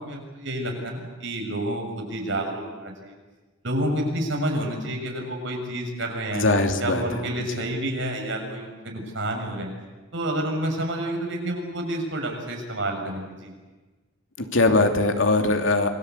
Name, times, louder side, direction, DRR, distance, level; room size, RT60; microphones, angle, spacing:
voice 1, 0.0-3.1 3.6-6.4 6.8-9.7 10.1-13.5, right 1 dB, 70° right, 2 dB, 6.6 m, -29 dB
voice 2, 6.3-7.2 7.5-7.6 14.4-15.9, left 2 dB, 75° left, 5 dB, 2.7 m, -21 dB
27.0 x 22.0 x 8.3 m, 1.3 s
head